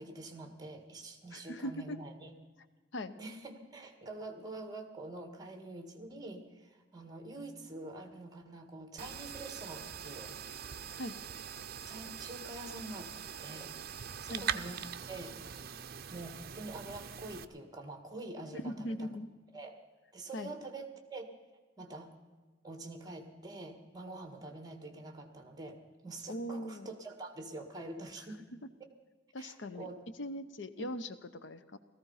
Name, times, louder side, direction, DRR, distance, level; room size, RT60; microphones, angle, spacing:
voice 1, 0.0-2.3 3.2-10.3 11.9-13.1 13.4-13.7 14.2-14.8 15.1-15.4 16.1-19.1 19.5-19.8 20.1-21.3 21.8-22.1 22.6-28.5 28.8-28.9 29.4-30.0 30.8-30.9, right 2 dB, 20° right, 6 dB, 1.8 m, -46 dB
voice 2, 1.3-2.0 2.9-3.2 11.0-11.2 14.3-14.5 18.5-19.3 20.3-20.5 26.3-26.9 29.3-29.9 30.2-31.8, equal, 65° left, 12 dB, 0.8 m, -40 dB
sound 1, 9.0-17.4, right 8 dB, 50° right, 0.6 m, -42 dB
17.5 x 14.5 x 5.7 m, 1.3 s
head